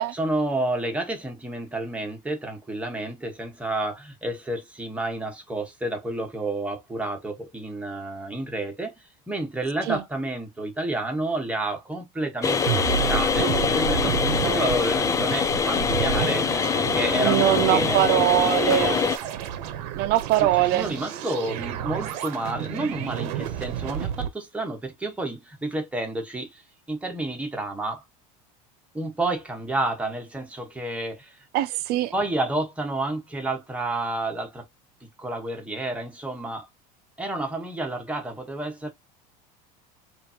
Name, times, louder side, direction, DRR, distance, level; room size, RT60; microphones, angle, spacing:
voice 1, 0.1-8.9 9.3-18.0 20.4-26.6 26.9-28.0 28.9-31.4 32.1-34.7 35.0-36.7 37.2-38.9, right 2 dB, 5° right, 1.3 m, -30 dB
sound 1, 12.4-19.2, left 6 dB, 15° left, 0.4 m, -24 dB
sound 2, 12.7-24.3, right 10 dB, 80° right, 0.9 m, -31 dB
voice 2, 17.2-19.0 19.9-21.0 31.5-32.1, right 15 dB, 50° right, 0.7 m, -22 dB
5.0 x 2.7 x 2.8 m
supercardioid pair, 145°, 20 cm